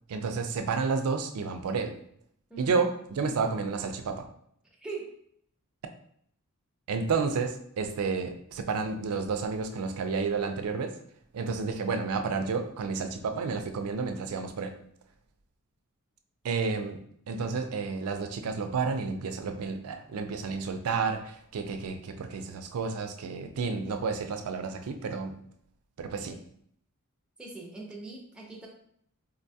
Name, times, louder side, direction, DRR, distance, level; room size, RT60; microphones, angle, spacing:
voice 1, 0.1-1.9 2.6-4.3 6.9-10.9 11.3-14.8 16.4-25.4 26.0-26.4, right 4 dB, 75° right, 7 dB, 0.4 m, -31 dB
voice 2, 4.8-5.2 26.3-26.4 27.4-28.7, right 3 dB, 5° right, -3 dB, 0.5 m, -41 dB
3.8 x 2.2 x 2.6 m, 0.68 s
head